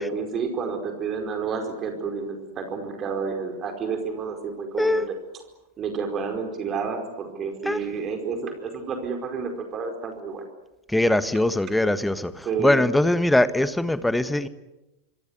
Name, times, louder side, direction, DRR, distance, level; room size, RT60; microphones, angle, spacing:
voice 1, 0.0-5.2 5.8-10.4 12.4-12.8, right 5 dB, 30° right, 4 dB, 4.8 m, -30 dB
voice 2, 10.9-14.5, left 1 dB, 5° left, 13 dB, 1.5 m, -22 dB
26.5 x 26.0 x 8.3 m, 0.96 s
figure-of-eight pair, 90°, 0 cm